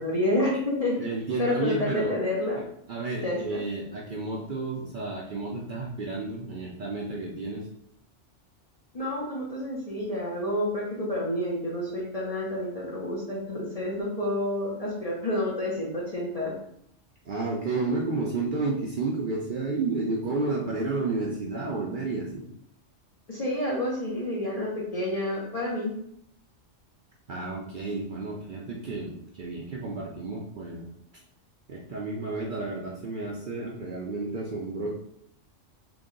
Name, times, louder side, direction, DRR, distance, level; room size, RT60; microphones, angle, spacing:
voice 1, 0.0-1.0 1.4-2.6 3.2-3.6 8.9-16.5 23.3-25.9, left 1 dB, 40° left, -4 dB, 0.6 m, -29 dB
voice 2, 1.0-2.2 2.9-7.7 17.2-22.4 27.3-30.9 31.7-34.9, right 3 dB, 55° right, -3 dB, 0.6 m, -31 dB
3.0 x 2.7 x 3.8 m, 0.71 s
omnidirectional pair, 1.3 m